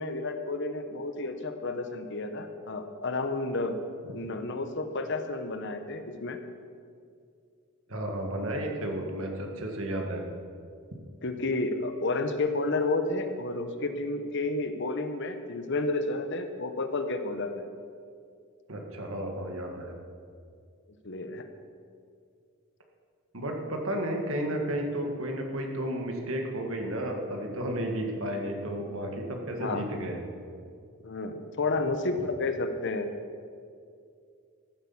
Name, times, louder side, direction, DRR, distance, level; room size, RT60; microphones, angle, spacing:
voice 1, 0.0-3.8 4.1-6.4 11.2-17.6 21.0-21.4 29.6-29.8 31.0-33.1, left 2 dB, 55° left, 7 dB, 1.0 m, -31 dB
voice 2, 7.9-10.2 18.7-19.9 23.3-30.2, right 1 dB, 70° right, 2 dB, 1.9 m, -32 dB
14.0 x 8.2 x 7.2 m, 2.3 s
head